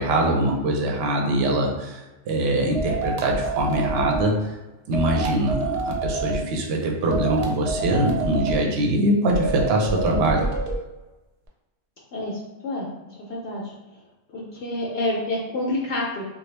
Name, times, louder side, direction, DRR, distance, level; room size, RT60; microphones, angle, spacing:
voice 1, 0.0-4.4 4.9-10.5, right 1 dB, 60° right, 0 dB, 0.8 m, -23 dB
sound 1, 2.7-4.3 4.9-6.4 7.1-8.6 9.3-10.8, right 2 dB, 80° right, 0.3 m, -27 dB
voice 2, 12.1-12.9 13.3-13.7 14.3-16.2, left 1 dB, 65° left, -3 dB, 0.8 m, -28 dB
3.1 x 2.3 x 3.2 m, 1.1 s
omnidirectional pair, 1.4 m